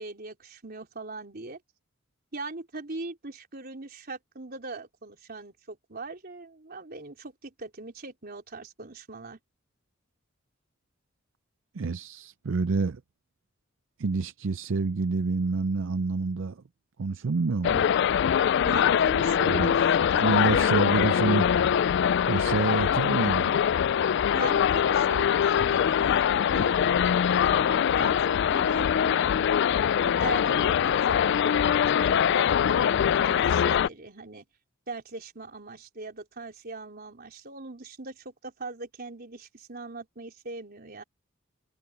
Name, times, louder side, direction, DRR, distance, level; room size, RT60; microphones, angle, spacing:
voice 1, 0.0-1.6 2.3-9.4 18.6-20.7 24.3-28.2 28.5-29.5 30.0-34.5 34.9-41.0, right 3 dB, 50° right, 3.8 m, -40 dB
voice 2, 11.7-13.0 14.0-16.6 17.0-17.8 19.4-19.7 20.2-21.6 22.3-23.5, right 4 dB, 70° right, 0.5 m, -28 dB
sound 1, 17.6-33.9, left 8 dB, 60° left, 0.3 m, -23 dB
head